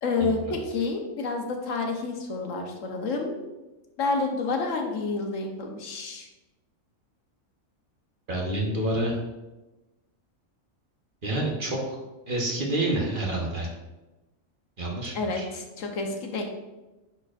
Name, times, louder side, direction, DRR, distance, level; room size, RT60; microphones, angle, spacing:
voice 1, 0.0-3.4 4.0-6.3 15.1-16.4, left 3 dB, 75° left, 3 dB, 1.2 m, -29 dB
voice 2, 8.3-9.2 11.2-12.0 12.3-13.7 14.8-15.5, right 1 dB, 40° right, -2 dB, 1.2 m, -28 dB
9.3 x 4.5 x 2.5 m, 1.1 s
omnidirectional pair, 1.4 m